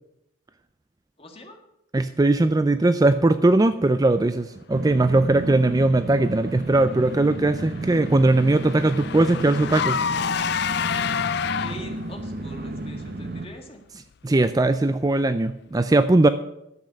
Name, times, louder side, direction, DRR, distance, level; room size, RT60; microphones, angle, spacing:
voice 1, 1.2-1.6 11.5-13.8, left 1 dB, 30° left, 3 dB, 1.9 m, -42 dB
voice 2, 1.9-10.0 14.2-16.3, right 2 dB, 20° right, 11 dB, 0.4 m, -19 dB
sound 1, 4.7-13.5, right 2 dB, 50° right, 0.8 m, -33 dB
Car / Engine, 7.0-12.1, left 7 dB, 55° left, 0.4 m, -28 dB
11.0 x 7.7 x 8.2 m, 0.83 s
head